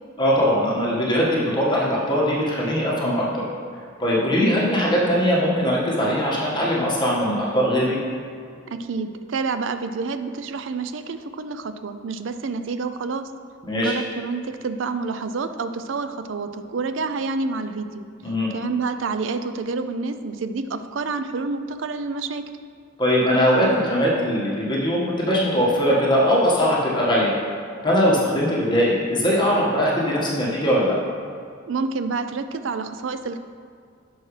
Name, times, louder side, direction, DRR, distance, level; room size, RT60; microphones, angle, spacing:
voice 1, 0.2-3.4 4.0-8.0 13.6-13.9 18.2-18.5 23.0-27.3 27.8-31.0, equal, 25° left, -6 dB, 1.6 m, -21 dB
voice 2, 8.7-13.3 13.8-18.1 18.5-22.5 31.7-33.4, right 4 dB, 70° right, 10 dB, 0.5 m, -28 dB
10.5 x 6.2 x 3.3 m, 2.2 s
head